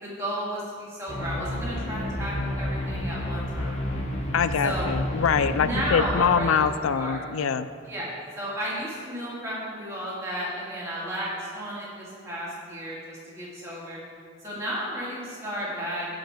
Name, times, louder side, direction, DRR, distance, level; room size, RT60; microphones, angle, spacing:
voice 1, 0.0-3.8 4.6-4.9 5.5-6.6 6.9-7.2 7.8-14.0 14.4-16.1, equal, 15° right, -8 dB, 2.4 m, -33 dB
sound 1, 1.1-6.3, left 1 dB, 35° left, 1.1 m, -30 dB
voice 2, 4.3-7.7, left 6 dB, 90° left, 13 dB, 0.4 m, -24 dB
14.0 x 5.4 x 4.4 m, 2.2 s
head